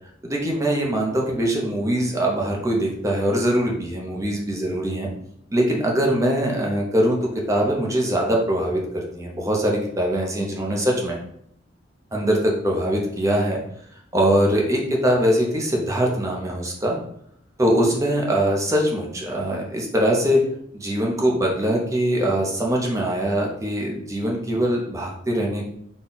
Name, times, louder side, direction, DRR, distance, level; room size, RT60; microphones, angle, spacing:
voice 1, 0.2-5.1 5.5-11.2 12.1-13.6 14.1-17.0 17.6-20.4 20.7-25.7, equal, 15° right, -1 dB, 0.7 m, -22 dB
4.1 x 2.3 x 3.9 m, 0.70 s
head